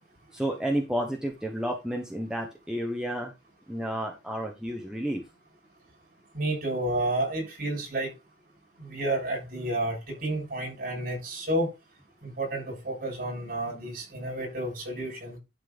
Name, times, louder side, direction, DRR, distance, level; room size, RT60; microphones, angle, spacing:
voice 1, 0.3-3.3 3.7-5.2, equal, 5° right, 1.3 m, -31 dB
voice 2, 6.3-8.1 8.8-11.7 12.2-15.4, right 1 dB, 45° right, 6.6 m, -30 dB
11.5 x 4.4 x 5.4 m
head